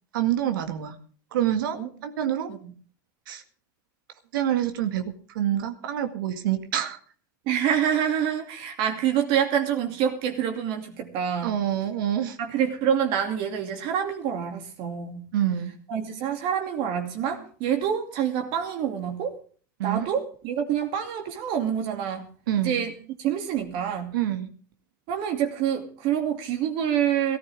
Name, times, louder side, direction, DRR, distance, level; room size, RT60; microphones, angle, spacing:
voice 1, 0.1-1.0 1.3-2.5 3.3-3.4 4.3-7.0 11.4-12.4 15.3-15.7 19.8-20.1 22.5-22.8 24.1-24.5, right 11 dB, 80° right, 7 dB, 2.0 m, -26 dB
voice 2, 7.5-11.5 12.4-15.2 15.9-19.4 19.8-22.3 22.6-22.9 23.2-24.1 25.1-27.4, right 9 dB, 50° right, 5 dB, 2.6 m, -27 dB
17.0 x 14.5 x 3.6 m, 0.43 s
supercardioid pair, 130°, 11 cm